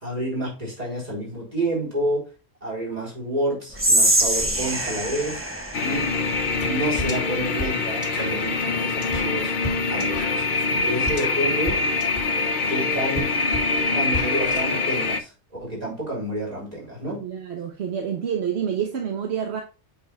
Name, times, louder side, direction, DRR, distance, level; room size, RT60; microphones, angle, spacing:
voice 1, 0.0-2.3 2.6-5.4 5.8-6.1 6.7-9.5 9.9-10.4 10.7-11.8 12.7-13.3 13.9-17.2, right 1 dB, 35° right, 4.1 m, -29 dB
Whispering, 3.7-7.0, right 1 dB, 10° right, 1.0 m, -24 dB
sound 1, 5.7-15.2, left 3 dB, 55° left, 0.8 m, -24 dB
sound 2, 6.6-6.7 7.0-14.6, equal, 20° left, 1.7 m, -34 dB
voice 2, 17.2-19.6, right 8 dB, 70° right, 1.2 m, -28 dB
8.3 x 5.2 x 2.3 m
omnidirectional pair, 1.1 m